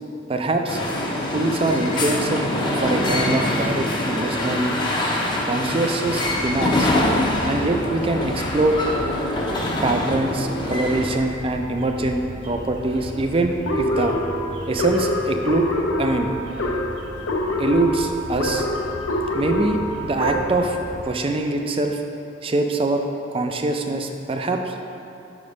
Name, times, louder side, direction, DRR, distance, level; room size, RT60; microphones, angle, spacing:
voice 1, 0.3-0.8 1.3-2.5 2.8-4.8 5.4-6.9 7.5-8.8 9.8-14.2 14.7-15.7 16.0-16.3 17.6-18.7 19.3-20.8 21.0-22.0 22.4-23.0 23.3-24.7, right 2 dB, 30° right, 5 dB, 0.4 m, -23 dB
sound 1, 0.7-11.0, left 1 dB, 25° left, 0.6 m, -24 dB
sound 2, 6.1-21.0, right 1 dB, 65° right, 1.2 m, -37 dB
sound 3, 13.7-20.7, left 2 dB, 85° left, 0.7 m, -25 dB
5.9 x 5.0 x 5.3 m, 2.7 s
head